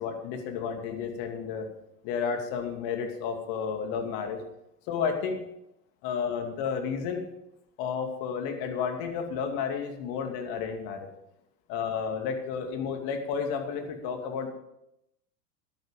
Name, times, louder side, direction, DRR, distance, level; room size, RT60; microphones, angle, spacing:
voice 1, 0.0-1.7 2.0-4.4 4.9-5.4 6.0-7.3 7.8-11.1 11.7-14.5, left 6 dB, 50° left, 4 dB, 2.7 m, -31 dB
14.0 x 10.5 x 5.3 m, 0.83 s
hypercardioid pair, 95°, 48 cm